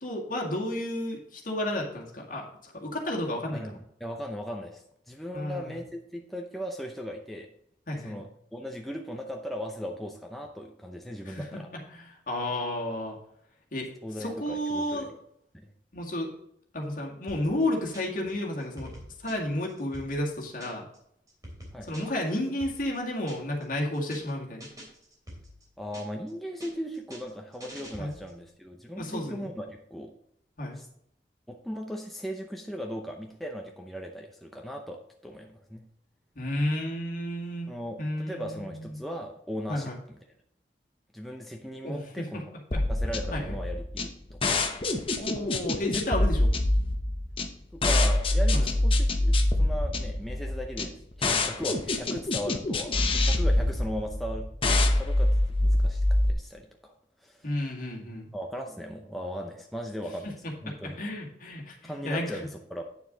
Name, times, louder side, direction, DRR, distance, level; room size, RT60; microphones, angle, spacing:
voice 1, 0.0-3.6 5.3-5.8 7.9-8.2 11.3-11.6 11.9-13.2 13.7-13.9 14.2-15.1 15.9-16.3 16.7-18.9 19.2-20.9 21.9-24.7 28.0-28.1 29.0-29.5 30.6-30.8 36.4-37.7 38.0-38.9 39.7-40.0 41.8-42.4 42.7-42.8 43.3-43.5 45.2-46.5 48.5-48.7 57.4-58.3 60.2-62.4, left 1 dB, 50° left, -1 dB, 2.0 m, -32 dB
voice 2, 3.5-7.5 8.0-11.7 14.0-15.2 15.5-15.7 21.7-22.0 25.8-30.1 30.7-30.9 31.5-35.9 37.7-40.2 41.1-42.4 42.9-44.5 47.7-54.5 55.0-55.3 55.6-56.9 57.2-57.5 58.3-61.0 61.8-62.8, equal, ahead, 1 dB, 0.6 m, -38 dB
sound 1, 17.3-18.3 18.6-21.0 21.3-23.6 23.9-24.3 24.6-26.3 26.6-28.4, equal, 20° right, 3.0 m, -46 dB
sound 2, 42.7-56.3, left 1 dB, 30° left, 0.9 m, -25 dB
9.0 x 7.0 x 3.9 m, 0.74 s
head